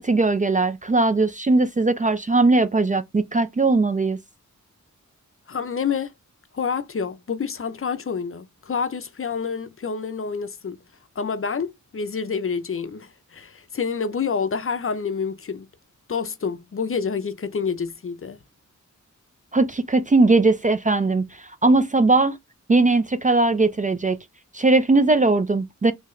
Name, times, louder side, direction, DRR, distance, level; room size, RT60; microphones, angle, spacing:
voice 1, 0.0-4.2 19.5-21.2 21.6-22.4 22.7-24.2 24.5-25.9, right 3 dB, 25° right, 0.3 m, -19 dB
voice 2, 5.5-6.1 6.5-10.8 11.2-15.7 16.1-18.4, left 6 dB, 45° left, 0.5 m, -28 dB
3.6 x 2.8 x 3.1 m
wide cardioid pair, 115°, 31 cm